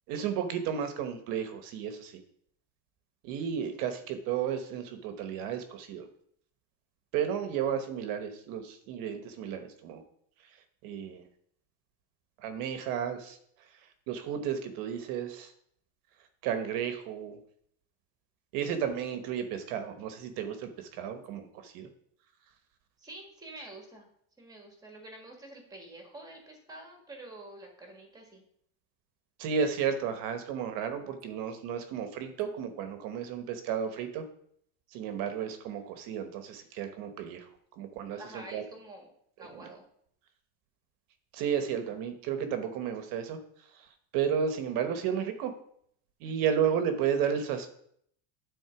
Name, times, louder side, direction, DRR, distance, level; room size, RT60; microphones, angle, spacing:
voice 1, 0.1-2.2 3.2-6.1 7.1-10.0 10.8-11.2 12.4-13.4 14.1-15.5 16.4-17.4 18.5-21.9 29.4-34.2 34.9-37.4 37.8-38.6 41.3-43.4 44.1-45.5 46.2-47.7, right 8 dB, 50° right, 8 dB, 1.1 m, -33 dB
voice 2, 23.0-24.1 24.4-28.4 38.1-39.1 39.4-39.8 46.2-46.6, right 1 dB, 10° right, 2 dB, 1.6 m, -48 dB
9.7 x 4.2 x 5.9 m, 0.67 s
cardioid pair, 160°, 42 cm